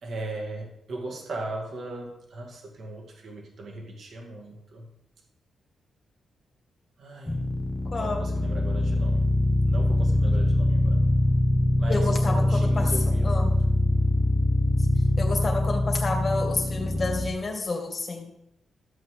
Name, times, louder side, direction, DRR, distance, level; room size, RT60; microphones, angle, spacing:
voice 1, 0.0-4.9 7.0-7.4 7.9-9.2 9.6-11.1 11.8-13.5, right 2 dB, 55° right, 0 dB, 2.2 m, -38 dB
sound 1, 7.3-17.3, left 1 dB, 15° left, 0.9 m, -23 dB
voice 2, 7.9-8.2 10.3-10.4 11.9-12.9 13.2-13.5 15.2-18.3, left 3 dB, 30° left, 0 dB, 2.2 m, -30 dB
13.5 x 7.9 x 3.8 m, 0.84 s
wide cardioid pair, 145°, 0 cm